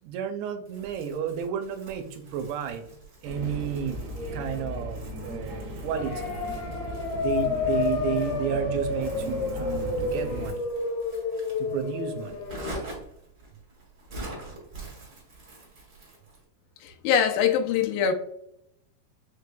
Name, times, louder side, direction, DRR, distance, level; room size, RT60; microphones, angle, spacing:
voice 1, 0.0-4.0 4.3-6.1 7.2-10.7 11.6-12.5, right 8 dB, 80° right, 7 dB, 2.5 m, -32 dB
Crumpling crinkling, 0.6-16.4, right 2 dB, 45° right, 1.4 m, -45 dB
sound 1, 3.2-10.5, equal, 65° right, 2.2 m, -36 dB
sound 2, 5.9-12.8, left 4 dB, 75° left, 2.0 m, -30 dB
voice 2, 16.8-18.1, left 8 dB, 90° left, 4 dB, 2.0 m, -23 dB
6.0 x 3.2 x 2.2 m, 0.72 s
omnidirectional pair, 4.8 m